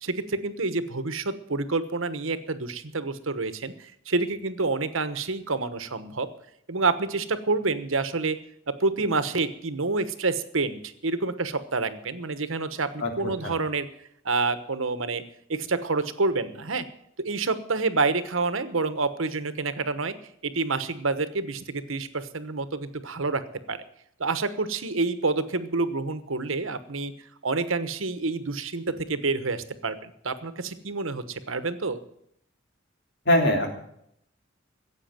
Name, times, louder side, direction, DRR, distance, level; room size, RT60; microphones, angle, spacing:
voice 1, 0.0-6.3 6.7-8.4 8.7-13.9 14.2-15.2 15.5-16.9 17.2-20.2 20.4-23.8 24.2-27.1 27.4-32.0, right 3 dB, 85° right, 12 dB, 1.2 m, -28 dB
voice 2, 13.0-13.5 33.2-33.8, left 1 dB, 60° left, 2 dB, 3.4 m, -23 dB
15.0 x 8.5 x 8.9 m, 0.73 s
head